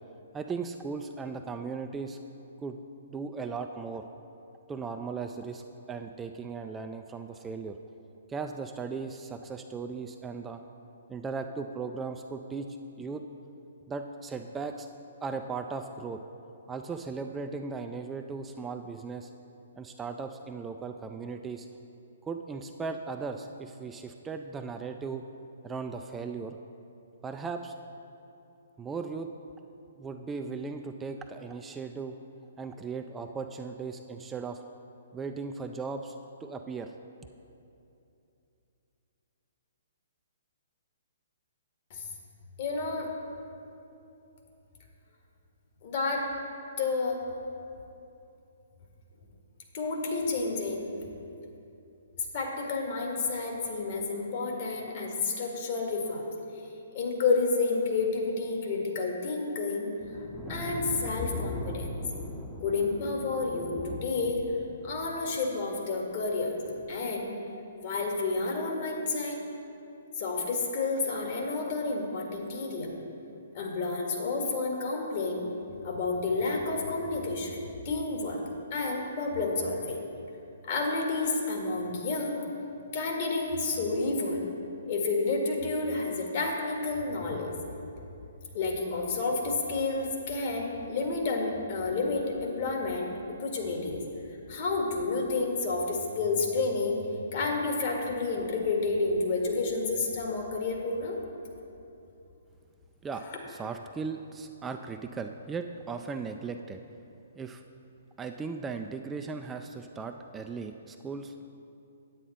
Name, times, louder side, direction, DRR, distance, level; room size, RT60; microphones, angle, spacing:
voice 1, 0.3-2.2 2.6-2.8 3.1-4.0 4.7-7.8 8.3-10.6 11.1-12.7 13.0-13.2 13.9-14.9 15.2-16.2 16.7-19.3 19.8-21.7 22.2-25.2 25.6-26.6 27.2-27.7 28.8-29.3 30.0-32.1 32.6-34.6 35.1-36.2 36.4-36.9 103.0-106.8 107.3-107.6 108.2-111.3, right 4 dB, 15° right, 5 dB, 0.4 m, -37 dB
voice 2, 42.6-43.1 45.8-46.3 46.8-47.2 49.7-50.9 52.3-56.2 56.9-59.9 60.5-61.9 62.6-64.4 64.8-66.6 66.9-67.3 67.8-69.4 70.2-72.9 73.5-75.4 75.8-78.4 78.7-80.0 80.6-82.4 82.9-84.5 84.9-87.5 88.5-94.0 94.5-97.0 97.3-101.2 103.3-103.4, left 3 dB, 50° left, 0 dB, 1.9 m, -30 dB
sound 1, 60.0-65.5 66.6-67.0, left 1 dB, 5° left, 0.8 m, -39 dB
9.0 x 8.8 x 4.3 m, 2.8 s
hypercardioid pair, 130°, 0 cm